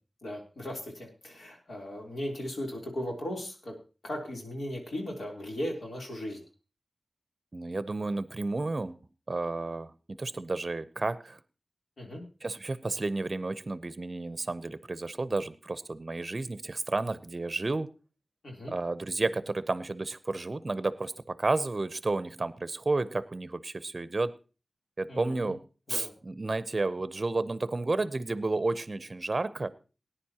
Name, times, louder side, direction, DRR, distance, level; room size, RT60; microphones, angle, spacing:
voice 1, 0.2-3.7 4.0-6.4 12.0-12.2 18.4-18.8 25.1-25.5 25.9-26.1, left 1 dB, 75° left, 0 dB, 3.4 m, -37 dB
voice 2, 7.5-9.0 9.3-11.4 12.4-17.9 18.7-24.3 25.0-25.6 25.9-29.7, right 3 dB, 40° right, 14 dB, 0.7 m, -31 dB
19.0 x 10.0 x 2.9 m, 0.33 s
wide cardioid pair, 100°, 0 cm